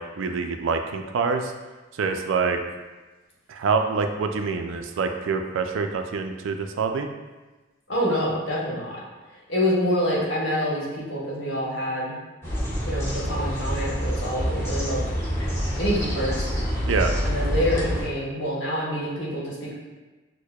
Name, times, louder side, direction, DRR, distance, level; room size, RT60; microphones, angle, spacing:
voice 1, 0.0-1.5 2.0-2.6 3.5-7.1 16.9-17.1, right 5 dB, 75° right, 6 dB, 0.4 m, -26 dB
voice 2, 7.9-9.0 9.3-12.1 12.8-15.0 15.8-16.5 17.2-19.7, equal, 70° left, -6 dB, 1.2 m, -26 dB
sound 1, 12.4-18.0, equal, 15° left, 0.8 m, -27 dB
6.2 x 2.1 x 2.3 m, 1.2 s
head